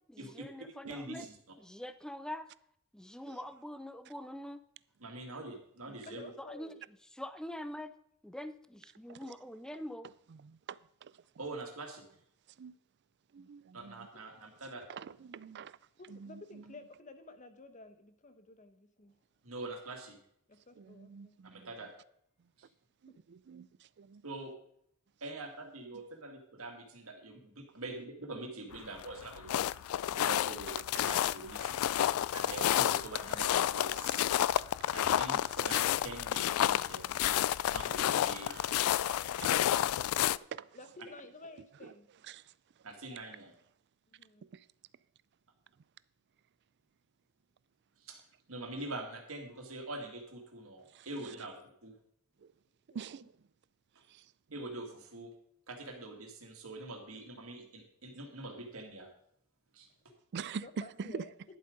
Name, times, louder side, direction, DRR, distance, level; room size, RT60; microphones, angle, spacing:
voice 1, 0.1-1.3 1.6-2.5 2.9-4.6 6.4-6.7 7.1-7.9 8.2-10.1, left 1 dB, 5° left, 0.5 m, -44 dB
voice 2, 0.9-1.3 5.0-6.2 11.4-12.1 13.7-14.8 19.4-20.2 21.5-21.9 22.6-22.7 24.2-24.5 25.2-29.7 30.1-31.7 32.3-34.3 34.9-37.2 37.7-38.5 42.8-43.5 48.0-48.2 48.5-51.9 54.5-55.3 55.7-59.1 59.7-59.9 61.0-61.2, right 2 dB, 85° right, 2.1 m, -44 dB
voice 3, 6.1-6.8 14.1-14.2 16.0-19.2 20.5-21.4 40.7-42.1 44.1-44.5 52.9-53.1 60.6-61.3, left 3 dB, 35° left, 1.0 m, -52 dB
voice 4, 10.7-11.1 12.6-12.7 13.3-14.1 14.9-15.8 16.1-16.6 20.8-21.7 23.0-23.7 24.0-24.2 35.0-35.1 37.2-37.4 38.2-39.9 40.5-40.7 42.3-42.4 44.5-44.6 50.9-51.1 52.9-53.2 60.3-60.6 61.1-61.2, right 6 dB, 55° right, 0.4 m, -45 dB
sound 1, 28.7-40.4, left 11 dB, 90° left, 0.3 m, -30 dB
11.0 x 7.6 x 5.1 m
head